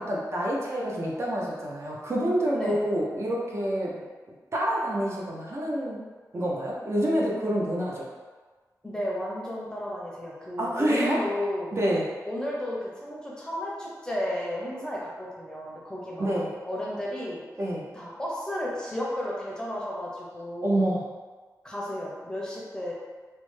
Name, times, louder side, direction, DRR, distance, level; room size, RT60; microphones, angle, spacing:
voice 1, 0.0-3.9 4.5-6.0 6.3-8.1 10.6-11.2 11.7-12.0 16.2-16.5 17.6-17.8 20.6-21.0, right 1 dB, 45° right, -4 dB, 0.5 m, -27 dB
voice 2, 8.8-11.7 12.2-16.3 16.7-17.4 17.9-20.9 21.6-22.9, left 1 dB, 10° left, -5 dB, 0.6 m, -33 dB
3.1 x 2.0 x 3.1 m, 1.4 s
wide cardioid pair, 130°, 6 cm